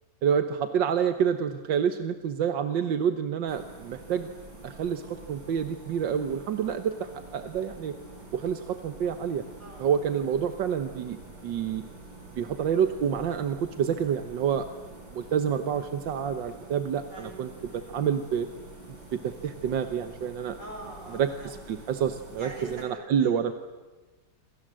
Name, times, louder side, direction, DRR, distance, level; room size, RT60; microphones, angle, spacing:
voice 1, 0.2-4.3 4.6-7.9 8.3-9.4 9.8-11.8 12.4-14.7 15.1-18.5 19.1-20.6 21.1-23.5, right 8 dB, 85° right, 8 dB, 1.8 m, -28 dB
sound 1, 3.5-22.8, right 2 dB, 70° right, 5.9 m, -47 dB
voice 2, 17.1-17.9 20.6-21.5 22.4-22.8 23.2-23.3, right 1 dB, 50° right, 0 dB, 7.9 m, -44 dB
27.5 x 27.5 x 7.6 m, 1.2 s
omnidirectional pair, 1.9 m